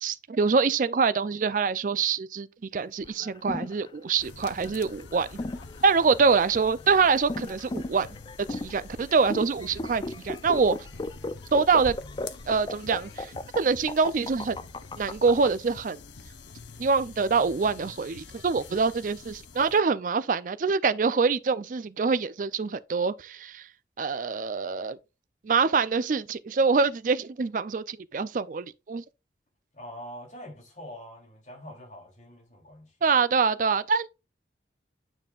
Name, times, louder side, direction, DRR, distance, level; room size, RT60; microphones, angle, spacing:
voice 1, 0.0-2.5 2.7-5.4 5.8-8.1 8.5-10.8 11.5-12.0 12.5-14.6 15.0-16.0 16.8-23.7 24.0-25.0 25.4-29.0 33.0-34.1, right 5 dB, 45° right, 0.4 m, -25 dB
sound 1, 3.0-15.5, left 2 dB, 25° left, 0.4 m, -36 dB
sound 2, 4.2-19.8, left 4 dB, 85° left, 0.8 m, -46 dB
voice 2, 29.7-32.9, equal, 40° left, 3.0 m, -44 dB
9.1 x 5.3 x 2.4 m
head